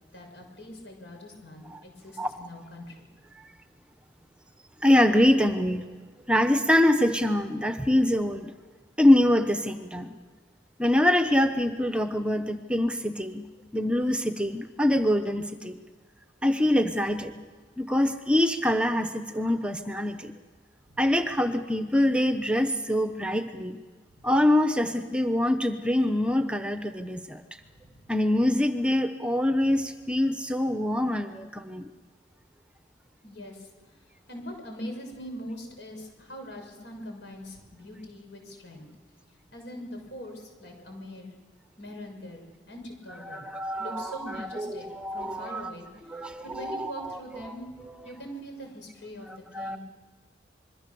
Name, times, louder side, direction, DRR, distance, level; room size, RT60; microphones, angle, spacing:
voice 1, 0.1-3.1 20.9-21.0 24.1-24.2 27.6-28.0 29.6-29.8 33.2-33.7 34.3-38.9 39.5-41.3 41.8-43.5 43.8-45.9 46.4-47.7 48.0-49.3 49.6-49.8, equal, 70° left, 3 dB, 6.3 m, -42 dB
voice 2, 4.8-5.8 6.3-8.5 9.0-10.1 10.8-13.4 13.7-15.8 16.4-17.3 17.8-20.3 21.0-23.8 24.2-27.4 28.1-31.9 43.3-45.7 46.1-47.2 47.4-47.5 49.5-49.8, left 1 dB, 5° right, 8 dB, 0.8 m, -24 dB
27.0 x 22.0 x 7.0 m, 1.5 s
head